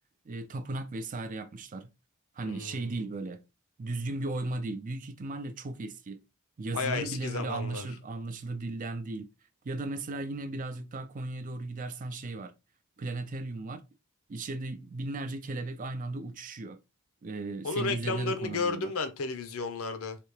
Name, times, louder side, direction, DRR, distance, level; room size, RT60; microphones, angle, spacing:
voice 1, 0.3-1.9 2.4-3.4 3.8-6.2 6.6-9.3 9.6-12.5 13.0-13.8 14.3-16.8 17.2-18.9, right 2 dB, 40° right, 0.4 m, -36 dB
voice 2, 2.4-3.0 6.7-7.9 17.6-20.2, left 4 dB, 85° left, 0.6 m, -33 dB
3.3 x 2.8 x 3.1 m
head